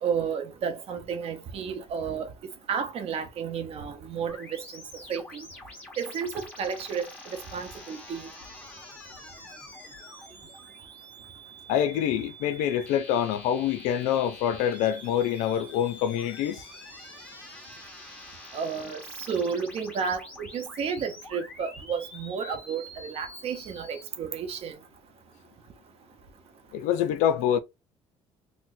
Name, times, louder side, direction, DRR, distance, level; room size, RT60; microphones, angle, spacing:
voice 1, 0.0-2.3 2.7-4.8 5.1-5.5 6.0-8.3 18.5-24.8, right 6 dB, 55° right, 0.9 m, -32 dB
sound 1, 4.3-24.0, left 1 dB, 10° left, 1.2 m, -46 dB
voice 2, 11.7-16.6 26.7-27.6, left 10 dB, 85° left, 0.5 m, -26 dB
4.2 x 2.1 x 2.7 m
cardioid pair, 95°, 12 cm